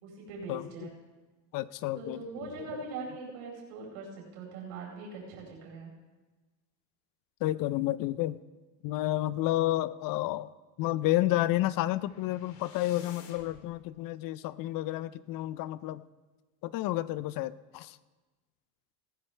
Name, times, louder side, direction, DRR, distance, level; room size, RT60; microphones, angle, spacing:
voice 1, 0.0-0.9 2.0-5.9, right 4 dB, 75° right, -2 dB, 4.7 m, -42 dB
voice 2, 1.5-2.5 7.4-8.4 8.8-10.5 10.8-16.0 16.6-18.0, left 15 dB, 45° left, 18 dB, 0.5 m, -30 dB
sound 1, 11.5-13.7, left 6 dB, 80° left, 2.2 m, -53 dB
18.5 x 14.0 x 3.3 m, 1.2 s
supercardioid pair, 105°, 48 cm